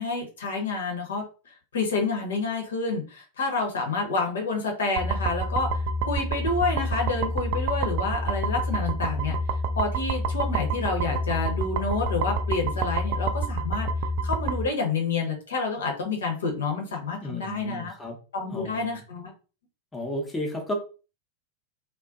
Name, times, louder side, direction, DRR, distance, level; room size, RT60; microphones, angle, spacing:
voice 1, 0.0-5.8 6.0-9.3 9.8-13.9 14.2-17.9 18.3-19.3, left 4 dB, 65° left, 2 dB, 0.7 m, -29 dB
sound 1, 5.0-14.6, right 2 dB, 45° right, 0.3 m, -28 dB
voice 2, 17.2-18.2 18.5-19.0 19.9-20.7, left 1 dB, 10° left, 1 dB, 0.7 m, -33 dB
2.5 x 2.1 x 2.4 m, 0.34 s
figure-of-eight pair, 90°, 0 cm